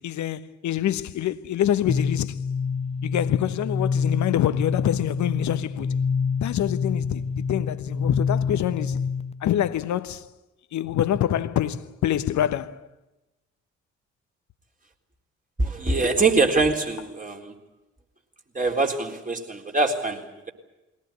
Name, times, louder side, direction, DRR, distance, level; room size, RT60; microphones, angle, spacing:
voice 1, 0.0-2.4 3.0-6.0 6.4-9.0 9.4-10.3 10.7-12.8, left 11 dB, 55° left, 1.2 m, -26 dB
sound 1, 1.9-9.4, left 5 dB, 15° left, 0.8 m, -27 dB
voice 2, 15.6-17.5 18.5-20.5, right 3 dB, 25° right, 3.9 m, -24 dB
22.0 x 18.0 x 9.6 m
figure-of-eight pair, 45°, 35 cm